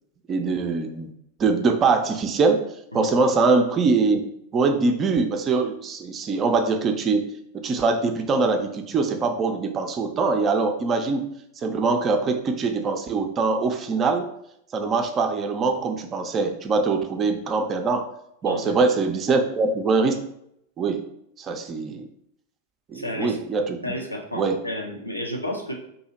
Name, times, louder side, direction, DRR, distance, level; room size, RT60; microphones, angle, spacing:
voice 1, 0.3-1.1 1.4-2.7 2.9-4.2 4.5-7.3 7.5-11.3 11.6-14.3 14.7-18.1 18.4-20.2 20.8-21.0 21.4-22.1 22.9-23.8 24.3-24.6, right 4 dB, 25° right, 6 dB, 0.4 m, -23 dB
voice 2, 18.4-18.8 22.9-23.4 23.8-25.7, left 1 dB, 85° left, 1 dB, 0.6 m, -31 dB
2.8 x 2.7 x 3.9 m, 0.75 s
figure-of-eight pair, 90°, 0 cm